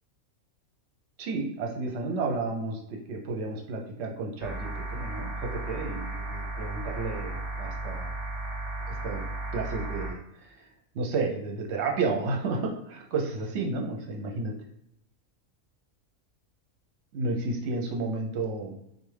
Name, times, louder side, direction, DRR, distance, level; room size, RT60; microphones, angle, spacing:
voice 1, 1.2-8.1 8.9-9.2 9.5-10.7 10.9-14.5 17.1-18.8, right 3 dB, 60° right, 1 dB, 0.9 m, -32 dB
sound 1, 4.4-10.1, right 2 dB, ahead, 0.8 m, -35 dB
3.5 x 2.4 x 3.3 m, 0.77 s
omnidirectional pair, 1.5 m